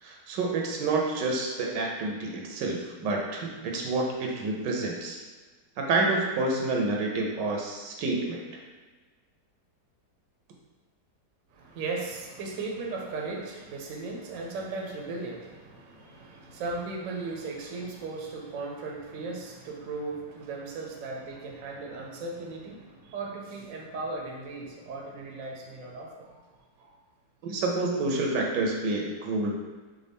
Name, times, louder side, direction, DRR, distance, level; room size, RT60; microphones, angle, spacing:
voice 1, 0.0-5.2 5.8-8.4 27.4-29.5, right 2 dB, 80° right, 0 dB, 1.3 m, -28 dB
voice 2, 11.5-26.3 26.8-26.9, right 3 dB, 60° right, -1 dB, 0.9 m, -37 dB
5.0 x 2.2 x 3.4 m, 1.4 s
omnidirectional pair, 1.9 m